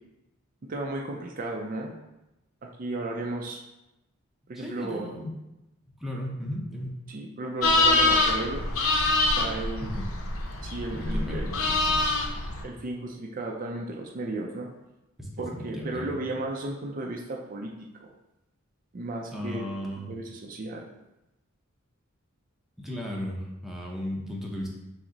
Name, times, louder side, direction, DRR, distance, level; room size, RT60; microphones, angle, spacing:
voice 1, 0.7-1.9 2.6-3.6 4.5-5.1 7.1-8.6 9.4-9.9 10.6-11.5 12.6-14.7 15.4-17.7 18.0-18.1 18.9-19.7 20.1-20.9, right 2 dB, 40° right, 0 dB, 0.4 m, -34 dB
voice 2, 4.5-5.3 6.0-7.0 9.8-10.1 10.9-12.1 15.2-16.2 19.3-20.1 22.8-24.7, equal, ahead, -3 dB, 0.6 m, -35 dB
sound 1, 7.6-12.6, left 2 dB, 85° left, 0.7 m, -25 dB
6.0 x 2.0 x 3.8 m, 0.95 s
head